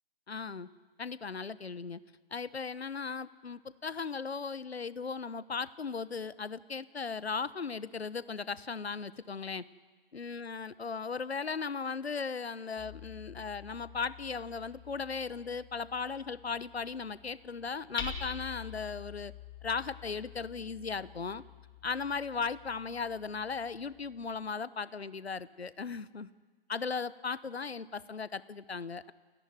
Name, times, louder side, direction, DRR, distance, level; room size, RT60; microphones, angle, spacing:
voice 1, 0.3-0.7 1.0-2.0 2.3-9.6 10.1-19.3 19.6-21.4 21.8-26.3 26.7-29.1, left 5 dB, 80° left, 17 dB, 1.0 m, -37 dB
Hammer, 12.8-24.5, left 7 dB, 15° left, 2.0 m, -48 dB
28.5 x 11.0 x 9.3 m, 1.5 s
figure-of-eight pair, 135°, 31 cm